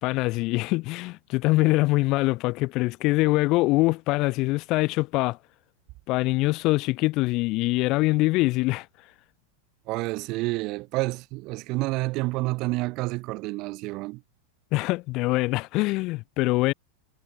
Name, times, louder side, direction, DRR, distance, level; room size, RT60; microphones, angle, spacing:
voice 1, 0.0-5.4 6.1-8.9 14.7-16.7, left 21 dB, 40° left, 1.1 m, -24 dB
voice 2, 9.9-14.2, right 23 dB, 40° right, 0.5 m, -29 dB
figure-of-eight pair, 90°, 0 cm